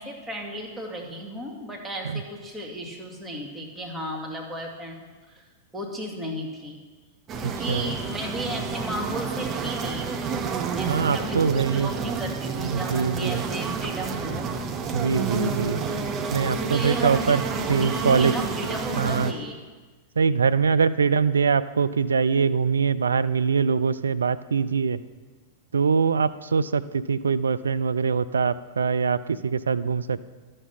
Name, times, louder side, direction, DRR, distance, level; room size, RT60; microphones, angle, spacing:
voice 1, 0.0-5.4 5.7-6.8 7.4-10.1 10.7-14.5 16.3-19.6, equal, 10° right, 0 dB, 2.1 m, -34 dB
sound 1, 7.3-19.3, right 5 dB, 30° right, 0.9 m, -29 dB
voice 2, 7.4-7.9 10.9-11.9 12.6-13.4 14.9-15.8 16.3-17.4 17.7-18.3 19.0-19.3 20.2-25.0 25.7-30.2, right 5 dB, 80° right, 14 dB, 0.4 m, -23 dB
12.0 x 6.5 x 5.8 m, 1.3 s
figure-of-eight pair, 100°, 0 cm